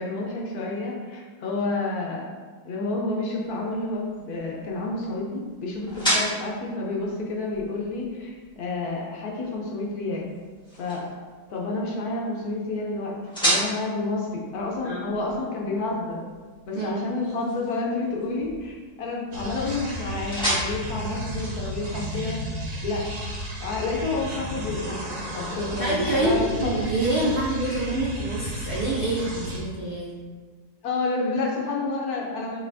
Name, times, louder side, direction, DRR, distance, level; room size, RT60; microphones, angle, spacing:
voice 1, 0.0-2.3 2.6-10.3 10.8-11.1 11.5-16.2 16.7-22.4 22.8-23.2 23.6-26.8 30.8-32.7, left 3 dB, 65° left, -2 dB, 1.1 m, -29 dB
sound 1, 3.3-22.1, right 1 dB, 5° left, 1.1 m, -34 dB
voice 2, 14.8-15.1 16.7-17.0 25.3-25.5 25.8-30.2, right 2 dB, 85° right, -7 dB, 0.4 m, -27 dB
sound 2, 19.3-29.6, equal, 50° right, 1.3 m, -33 dB
5.3 x 3.4 x 2.6 m, 1.5 s
omnidirectional pair, 2.0 m